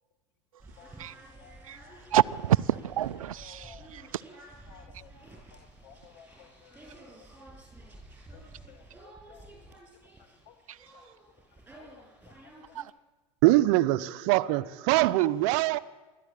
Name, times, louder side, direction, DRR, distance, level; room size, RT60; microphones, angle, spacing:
sound 1, 0.6-12.8, right 1 dB, 10° right, 8.0 m, -51 dB
voice 1, 0.8-2.0 3.4-3.9 4.7-5.1 5.5-6.8 7.2-7.3 8.3-8.4 8.7-9.5 10.5-10.6 10.9-11.1 11.5-12.8 14.4-14.6 14.9-15.1 15.5-15.6, left 9 dB, 55° left, 1.6 m, -56 dB
voice 2, 2.1-4.2 10.7-10.8 12.7-12.9, right 11 dB, 85° right, 0.6 m, -28 dB
voice 3, 13.4-15.8, right 17 dB, 60° right, 0.9 m, -23 dB
27.0 x 12.0 x 8.6 m
hypercardioid pair, 95°, 17 cm